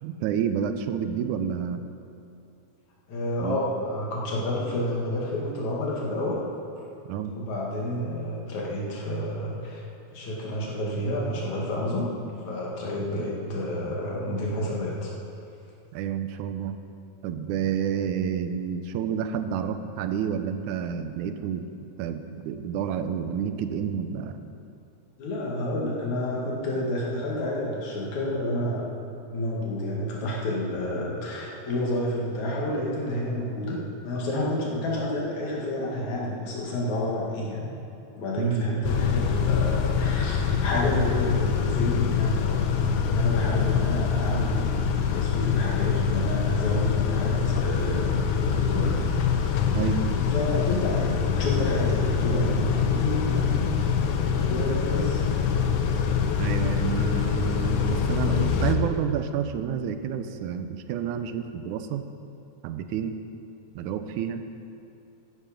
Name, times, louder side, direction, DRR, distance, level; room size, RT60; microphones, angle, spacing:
voice 1, 0.0-1.8 3.4-3.6 7.1-7.3 13.2-13.3 15.9-16.8 17.2-21.6 22.0-24.4 38.4-38.7 49.0-49.1 49.7-50.0 56.4-62.0 62.6-63.2 63.8-64.4, right 8 dB, 90° right, 9 dB, 2.1 m, -29 dB
voice 2, 3.1-6.5 7.4-9.9 10.1-12.2 12.4-15.1 25.2-28.9 29.3-37.7 38.1-44.8 45.1-49.0 50.3-53.7 54.5-55.2, left 1 dB, 70° left, -4 dB, 3.5 m, -29 dB
Car / Idling / Accelerating revving vroom, 38.8-58.8, left 7 dB, 85° left, 2.3 m, -25 dB
14.0 x 11.5 x 5.3 m, 2.6 s
omnidirectional pair, 3.5 m